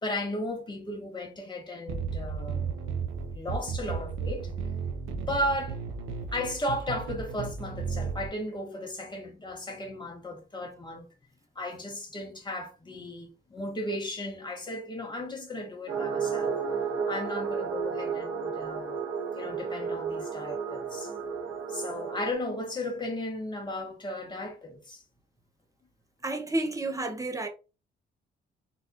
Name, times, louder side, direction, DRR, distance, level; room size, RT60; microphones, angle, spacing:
voice 1, 0.0-2.8 3.3-4.5 5.3-5.8 6.3-11.1 11.5-16.6 17.1-19.0 19.3-21.1 21.7-25.0, left 1 dB, 20° left, 1.7 m, -35 dB
sound 1, 1.9-8.3, right 5 dB, 90° right, 1.0 m, -34 dB
sound 2, 15.9-22.3, right 6 dB, 70° right, 2.1 m, -32 dB
voice 2, 26.2-27.5, right 2 dB, 15° right, 0.9 m, -30 dB
4.2 x 4.0 x 2.5 m
cardioid pair, 90°, 20 cm